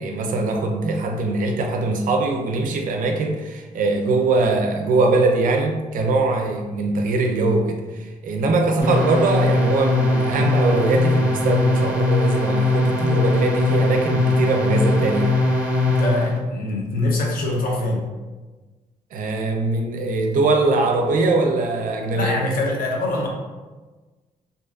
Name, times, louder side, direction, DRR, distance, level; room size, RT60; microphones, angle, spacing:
voice 1, 0.0-15.3 19.1-22.4, right 3 dB, 65° right, 3 dB, 0.4 m, -21 dB
sound 1, 8.8-16.4, left 2 dB, 15° right, 0.5 m, -20 dB
voice 2, 15.8-18.0 22.1-23.3, left 2 dB, 70° left, -1 dB, 0.6 m, -23 dB
2.6 x 2.3 x 2.3 m, 1.2 s
cardioid pair, 125°, 15 cm